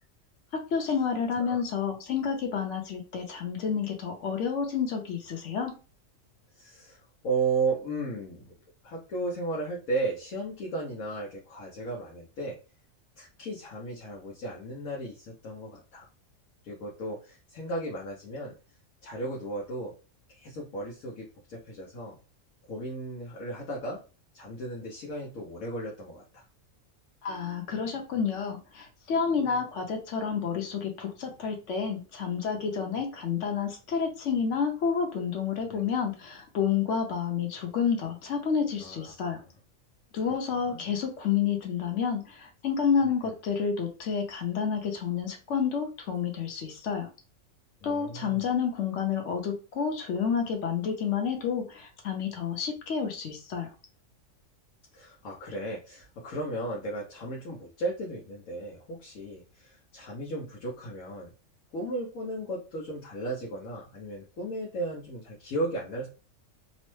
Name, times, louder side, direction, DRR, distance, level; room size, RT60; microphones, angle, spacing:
voice 1, 0.7-5.7 27.2-39.4 40.1-47.1 47.8-53.7, left 6 dB, 65° left, 3 dB, 1.1 m, -29 dB
voice 2, 6.5-8.5 8.8-12.6 13.2-16.1 16.6-18.5 19.0-19.9 20.3-22.2 22.7-24.0 24.3-26.4 35.7-35.8 38.8-39.4 40.5-40.9 43.0-43.3 47.8-48.5 54.9-61.3 61.7-66.1, right 2 dB, 85° left, -3 dB, 1.2 m, -35 dB
3.1 x 2.1 x 3.0 m, 0.33 s
omnidirectional pair, 1.4 m